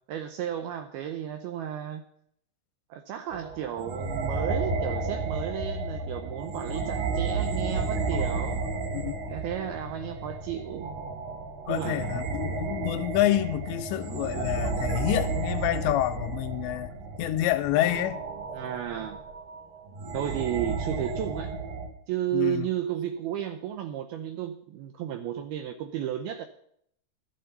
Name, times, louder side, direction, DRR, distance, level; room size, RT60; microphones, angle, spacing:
voice 1, 0.1-2.0 2.9-8.7 9.3-10.9 11.7-12.2 18.5-19.2 20.1-21.6 22.1-26.5, right 10 dB, 80° right, 2.2 m, -33 dB
sound 1, 3.3-21.9, right 3 dB, 60° right, 2.9 m, -32 dB
voice 2, 11.7-16.9 17.2-18.2 22.3-22.7, left 14 dB, 85° left, 2.8 m, -28 dB
13.0 x 7.9 x 6.6 m
omnidirectional pair, 5.2 m